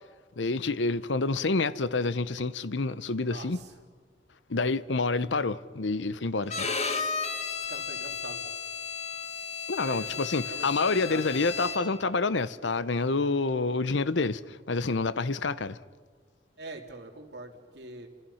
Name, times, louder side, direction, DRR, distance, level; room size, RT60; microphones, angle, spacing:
voice 1, 0.4-3.6 4.5-6.7 9.7-15.8, left 3 dB, 80° left, 0.8 m, -28 dB
voice 2, 3.3-3.7 7.7-8.5 9.8-10.7 11.1-11.4 15.3-15.4 16.6-18.1, right 2 dB, 65° right, 3.3 m, -43 dB
Bowed string instrument, 6.5-12.1, left 5 dB, 35° left, 1.7 m, -34 dB
29.5 x 27.0 x 5.7 m
head